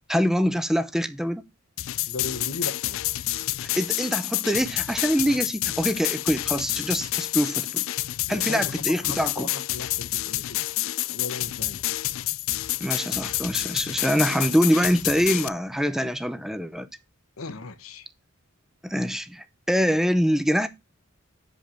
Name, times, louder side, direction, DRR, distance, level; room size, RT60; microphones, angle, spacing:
voice 1, 0.1-1.5 3.6-7.8 8.3-9.5 12.8-16.9 18.8-20.7, equal, ahead, 0.6 m, -24 dB
sound 1, 1.8-15.5, left 16 dB, 65° left, 0.4 m, -29 dB
voice 2, 2.1-3.0 8.3-10.6 11.1-11.8 17.4-18.1, left 3 dB, 85° left, 1.0 m, -37 dB
6.6 x 5.2 x 5.7 m
head